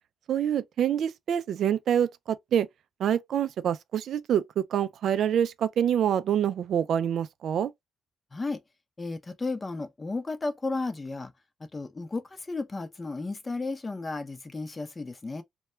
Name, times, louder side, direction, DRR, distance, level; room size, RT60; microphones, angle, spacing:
voice 1, 0.3-2.7 3.0-7.7, right 9 dB, 65° right, 0.3 m, -26 dB
voice 2, 9.0-11.3 11.7-15.4, left 3 dB, 25° left, 0.6 m, -33 dB
2.2 x 2.2 x 3.0 m
cardioid pair, 90°, 0 cm